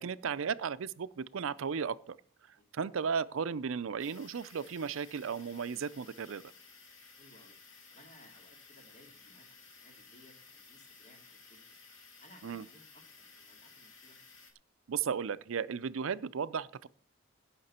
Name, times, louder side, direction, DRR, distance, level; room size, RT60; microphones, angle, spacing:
voice 1, 0.0-2.2 2.7-6.4 12.4-12.6 14.9-16.9, right 6 dB, 75° right, 0.5 m, -35 dB
sound 1, 4.0-14.5, left 4 dB, 70° left, 2.2 m, -56 dB
voice 2, 7.1-7.6 7.9-11.6 12.2-14.2, left 1 dB, 35° left, 2.5 m, -61 dB
17.0 x 5.8 x 4.3 m
head